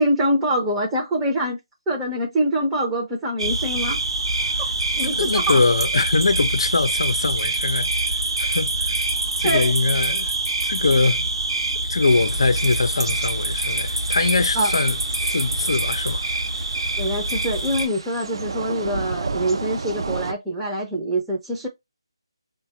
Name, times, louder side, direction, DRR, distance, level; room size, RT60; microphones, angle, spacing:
voice 1, 0.0-1.6 1.9-4.0 4.9-5.6 9.4-9.7 14.5-14.7 17.0-21.7, right 1 dB, 5° right, 0.6 m, -24 dB
sound 1, 3.4-17.9, right 2 dB, 80° right, 0.8 m, -25 dB
voice 2, 5.0-9.0 9.4-10.3 10.6-11.3 11.9-16.3, left 3 dB, 65° left, 0.6 m, -22 dB
Thunder / Rain, 12.1-20.3, right 4 dB, 60° right, 0.4 m, -34 dB
4.1 x 2.2 x 2.8 m
figure-of-eight pair, 160°, 3 cm